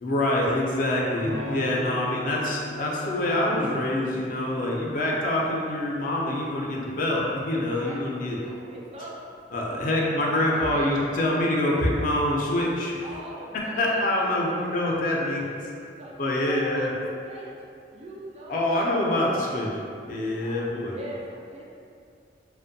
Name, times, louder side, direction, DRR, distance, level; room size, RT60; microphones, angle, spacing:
voice 1, 0.0-8.4 9.5-13.0 13.5-15.4 16.2-16.9 18.5-19.7 20.1-20.9, left 1 dB, 50° left, -3 dB, 0.4 m, -25 dB
Electric guitar / Strum, 1.2-6.9, left 1 dB, 85° right, 0.7 m, -40 dB
voice 2, 7.7-9.3 9.7-11.0 13.0-15.6 16.0-16.9 17.2-17.5 17.9-18.8 19.2-19.5 20.4-21.6, right 1 dB, 35° right, -3 dB, 0.3 m, -41 dB
2.5 x 2.1 x 2.6 m, 2.4 s
head